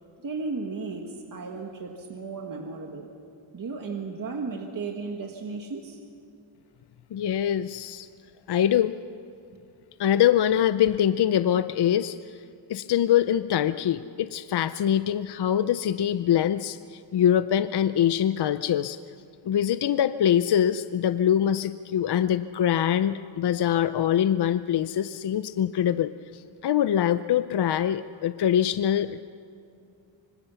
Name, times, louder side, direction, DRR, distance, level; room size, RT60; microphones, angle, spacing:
voice 1, 0.2-3.1 3.5-6.0, right 4 dB, 45° right, 2 dB, 1.6 m, -34 dB
voice 2, 7.1-8.1 8.5-8.9 10.0-12.2 12.7-19.0 19.4-29.3, left 10 dB, 55° left, 13 dB, 0.6 m, -24 dB
25.5 x 25.0 x 7.0 m, 2.5 s
wide cardioid pair, 165°, 47 cm